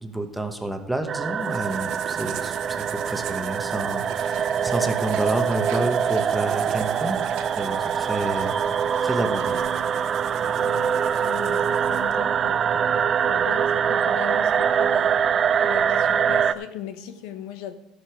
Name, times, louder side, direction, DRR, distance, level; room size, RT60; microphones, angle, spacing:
voice 1, 0.0-7.2 7.6-8.6 9.0-9.6, right 1 dB, 5° right, 6 dB, 1.0 m, -29 dB
sound 1, 1.1-16.5, right 7 dB, 30° right, 0.4 m, -24 dB
sound 2, 1.4-12.1, right 9 dB, 50° right, 0.9 m, -41 dB
Livestock farm animals working animals, 4.0-9.6, right 9 dB, 85° right, 1.6 m, -46 dB
voice 2, 10.6-12.6 13.2-15.2 15.6-17.7, left 9 dB, 85° left, 10 dB, 1.1 m, -38 dB
14.0 x 7.3 x 4.8 m, 0.85 s
cardioid pair, 150°, 0 cm